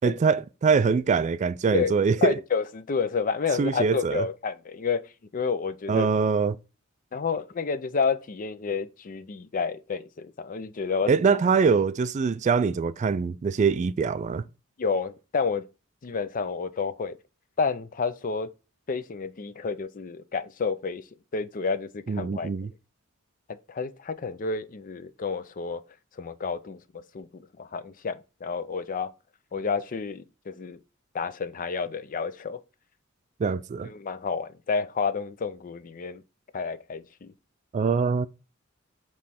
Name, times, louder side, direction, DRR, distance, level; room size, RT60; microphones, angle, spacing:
voice 1, 0.0-2.4 3.6-4.2 5.9-6.6 11.1-14.4 22.1-22.7 33.4-33.9 37.7-38.3, right 5 dB, 35° right, 0.3 m, -23 dB
voice 2, 2.2-5.0 5.3-6.1 7.1-11.1 14.8-15.6 16.0-17.2 17.6-18.5 18.9-21.0 21.3-22.5 23.7-25.8 26.2-26.8 27.1-29.1 29.5-30.8 31.1-32.6 33.8-36.2 36.5-37.3, left 5 dB, 40° left, 0.5 m, -30 dB
7.4 x 3.1 x 4.2 m
head